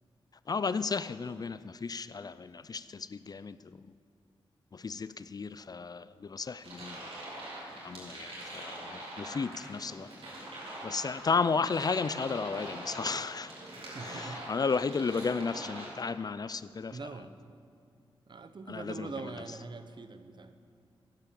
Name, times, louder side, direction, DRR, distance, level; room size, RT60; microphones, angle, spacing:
voice 1, 0.5-3.9 4.7-7.1 7.8-10.1 10.8-13.5 14.0-17.0 18.7-19.1, left 5 dB, 40° left, 15 dB, 0.4 m, -33 dB
sound 1, 6.6-15.9, right 1 dB, 70° right, 3.3 m, -43 dB
voice 2, 13.9-14.5 16.9-17.3 18.3-20.6, right 4 dB, 50° right, 10 dB, 0.8 m, -43 dB
10.5 x 9.0 x 6.9 m, 2.3 s
cardioid pair, 50°, 10 cm